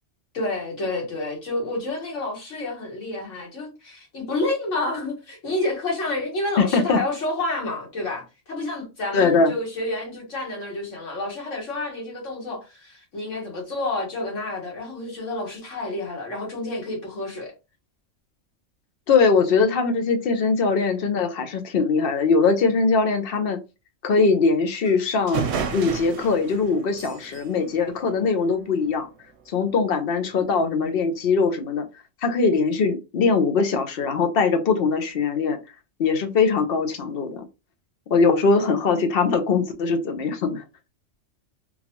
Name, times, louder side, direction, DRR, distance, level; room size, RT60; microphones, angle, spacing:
voice 1, 0.3-17.5 30.3-31.0 38.9-39.0, left 2 dB, 70° left, 1.7 m, -29 dB
voice 2, 6.6-7.0 9.1-9.5 19.1-23.6 24.0-25.4 25.7-29.1 29.5-31.8 32.2-35.6 36.0-37.4 38.1-40.6, left 4 dB, 55° left, 0.8 m, -21 dB
sound 1, 24.9-25.0 25.3-28.7, right 6 dB, 65° right, 0.9 m, -32 dB
3.9 x 2.3 x 2.9 m
omnidirectional pair, 1.3 m